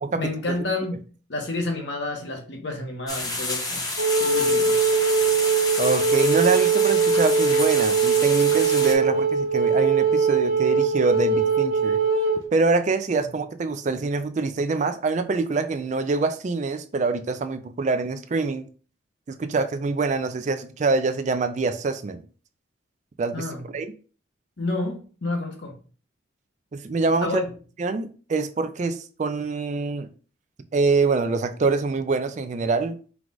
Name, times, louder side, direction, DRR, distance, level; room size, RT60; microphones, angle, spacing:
voice 1, 0.1-3.9 4.2-4.8 23.3-23.6 24.6-25.8 27.2-27.6, left 2 dB, 60° left, 1.1 m, -30 dB
sound 1, 3.1-8.9, left 2 dB, 20° left, 0.8 m, -29 dB
Wind instrument woodwind instrument, 4.0-12.4, right 5 dB, 85° right, 1.2 m, -21 dB
voice 2, 5.8-12.0 12.5-18.6 19.3-22.2 23.2-23.4 23.7-23.9 26.7-27.4 27.8-30.1 30.7-33.0, right 3 dB, 35° right, 0.3 m, -25 dB
4.6 x 2.4 x 3.9 m
head